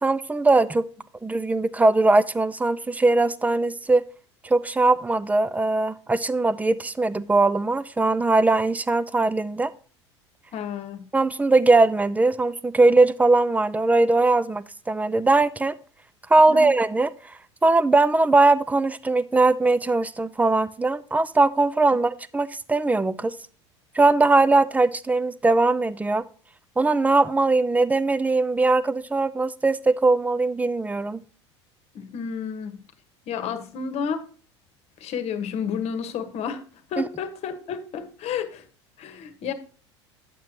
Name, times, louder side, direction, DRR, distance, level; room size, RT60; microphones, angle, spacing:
voice 1, 0.0-0.9 1.2-4.1 4.4-9.7 11.1-15.8 16.3-23.4 23.9-26.2 26.8-31.2 37.0-37.1, right 3 dB, 10° right, 0.5 m, -20 dB
voice 2, 10.5-11.0 16.5-16.7 31.9-32.8 33.3-34.3 35.0-36.6 36.9-38.6 39.0-39.5, left 6 dB, 45° left, 1.2 m, -31 dB
9.2 x 7.4 x 2.9 m
hypercardioid pair, 75°, 15 cm